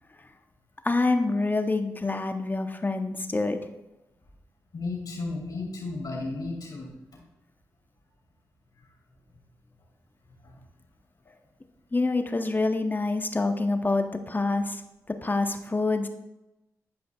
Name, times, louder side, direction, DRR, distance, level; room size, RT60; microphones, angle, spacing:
voice 1, 0.8-3.6 11.9-14.8 15.2-16.1, left 3 dB, 25° left, 7 dB, 0.9 m, -26 dB
voice 2, 4.7-7.2 10.4-10.6, left 3 dB, 65° left, -2 dB, 2.6 m, -34 dB
12.0 x 5.2 x 2.3 m, 0.97 s
supercardioid pair, 45°, 7 cm